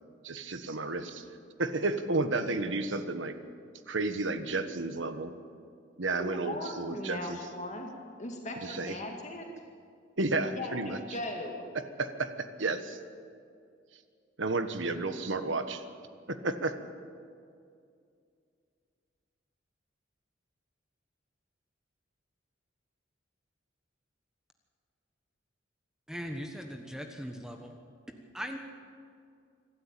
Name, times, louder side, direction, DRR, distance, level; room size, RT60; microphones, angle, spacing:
voice 1, 0.2-1.2 1.6-3.3 3.9-5.3 6.0-7.4 8.7-9.0 10.2-11.0 12.0-13.0 14.4-15.8 16.3-16.8, right 3 dB, 80° right, 9 dB, 1.4 m, -32 dB
voice 2, 6.2-7.9 8.2-9.5 10.5-11.7, left 1 dB, 40° left, 1 dB, 2.1 m, -38 dB
voice 3, 26.1-27.8 28.3-28.6, equal, 5° right, 4 dB, 1.3 m, -39 dB
25.5 x 12.5 x 9.1 m, 2.3 s
head